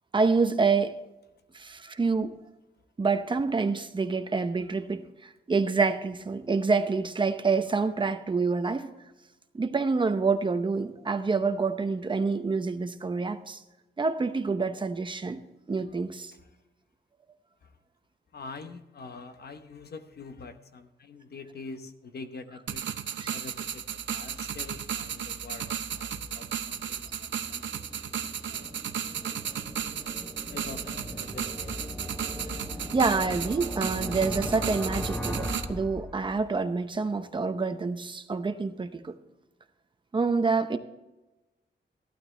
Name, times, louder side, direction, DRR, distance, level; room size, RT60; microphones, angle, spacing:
voice 1, 0.1-1.0 1.5-2.4 3.0-8.9 9.5-13.6 14.0-15.4 15.7-16.3 32.9-39.1 40.1-40.8, right 4 dB, 25° right, 0.7 m, -27 dB
voice 2, 18.3-27.8 28.4-28.8 30.5-32.2, left 4 dB, 60° left, 0.9 m, -45 dB
sound 1, 22.7-35.6, right 9 dB, 80° right, 0.7 m, -35 dB
sound 2, 23.7-36.6, left 1 dB, 10° left, 0.9 m, -39 dB
14.5 x 12.0 x 3.3 m
wide cardioid pair, 175°, 19 cm